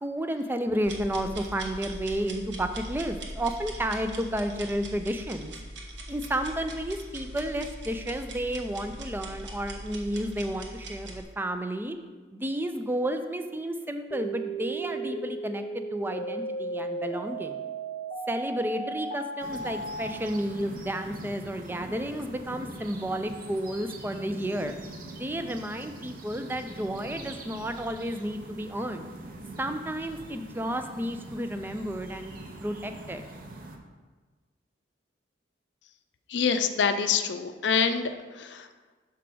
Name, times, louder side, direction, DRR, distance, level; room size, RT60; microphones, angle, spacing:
voice 1, 0.0-5.6 6.1-12.0 12.3-17.6 18.3-24.7 25.1-29.0 29.6-32.3 32.6-33.2, right 1 dB, 10° right, 7 dB, 0.4 m, -32 dB
sound 1, 0.8-11.2, right 1 dB, 75° right, 1.1 m, -41 dB
sound 2, 14.1-20.1, right 2 dB, 35° left, 0.8 m, -35 dB
sound 3, 19.4-33.8, right 2 dB, 50° right, 0.8 m, -43 dB
voice 2, 36.3-38.1 38.4-38.7, left 6 dB, 70° left, 8 dB, 0.5 m, -25 dB
6.0 x 4.6 x 6.0 m, 1.4 s
head